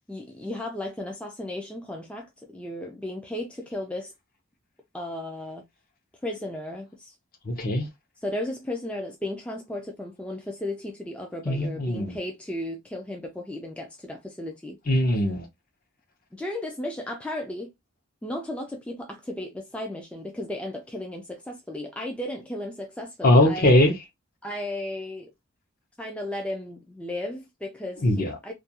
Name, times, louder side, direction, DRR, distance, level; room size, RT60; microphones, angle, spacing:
voice 1, 0.1-4.1 4.9-5.7 6.2-7.1 8.2-14.8 16.3-17.7 18.2-23.8 24.4-25.3 26.0-28.5, left 1 dB, 5° left, 0.3 m, -35 dB
voice 2, 7.4-7.9 11.5-12.2 14.9-15.5 23.2-23.9 28.0-28.3, left 1 dB, 45° left, 0.6 m, -20 dB
2.4 x 2.3 x 2.7 m
head